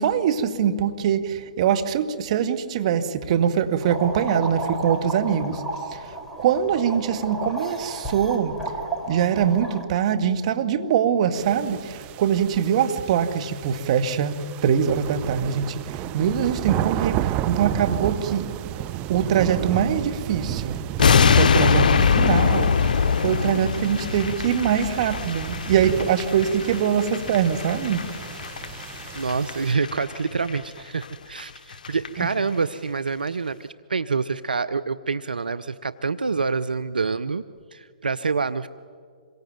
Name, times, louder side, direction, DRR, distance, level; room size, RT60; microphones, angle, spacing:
voice 1, 0.0-5.6 5.9-8.6 9.1-18.5 19.1-20.8 21.3-22.8 23.2-28.1 32.2-32.3, right 8 dB, 45° right, 1.9 m, -23 dB
sound 1, 3.8-9.8, right 2 dB, ahead, 4.6 m, -32 dB
sound 2, 11.3-29.7, right 13 dB, 25° right, 0.7 m, -32 dB
sound 3, 21.0-30.2 30.4-30.6 31.0-31.1 31.4-31.5 31.7-32.1 32.3-32.4, left 6 dB, 65° left, 0.6 m, -23 dB
voice 2, 29.1-37.4 37.7-38.7, right 4 dB, 85° right, 0.8 m, -27 dB
27.0 x 23.0 x 9.2 m
figure-of-eight pair, 130°, 5 cm